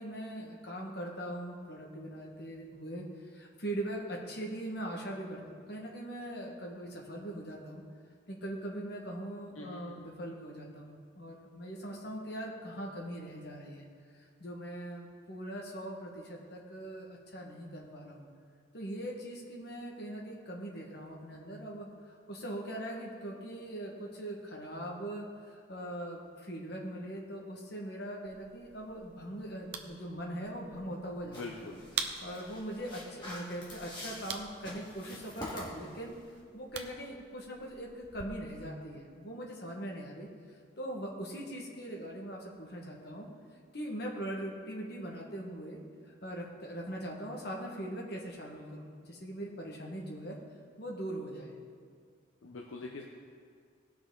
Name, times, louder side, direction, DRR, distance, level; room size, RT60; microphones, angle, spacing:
voice 1, 0.0-3.0 3.3-7.8 8.3-13.9 14.4-18.2 18.7-31.4 32.0-36.1 36.5-40.3 40.8-43.3 43.7-50.4 50.8-51.5, right 1 dB, 50° left, -1 dB, 1.6 m, -41 dB
voice 2, 9.5-10.1 31.2-32.1 52.4-53.0, left 2 dB, 75° left, 0 dB, 0.8 m, -44 dB
sound 1, 28.3-38.3, right 7 dB, 55° right, 0.7 m, -46 dB
sound 2, 31.3-36.4, left 1 dB, 20° left, 2.1 m, -46 dB
17.5 x 6.0 x 3.9 m, 2.1 s
head